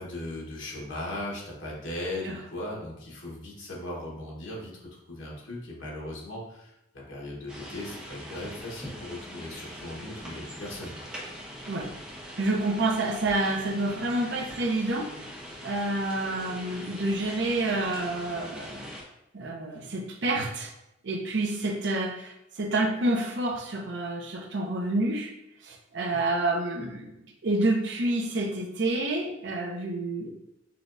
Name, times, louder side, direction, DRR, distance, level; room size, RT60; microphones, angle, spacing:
voice 1, 0.0-10.9, left 1 dB, 85° left, -3 dB, 1.2 m, -38 dB
sound 1, 7.5-19.0, equal, 5° right, 0.7 m, -42 dB
voice 2, 12.4-15.1 15.6-18.9 19.3-20.7 21.0-25.3 25.6-27.2 27.4-30.3, right 2 dB, 65° right, 2 dB, 0.7 m, -28 dB
5.8 x 2.3 x 2.5 m, 0.87 s
head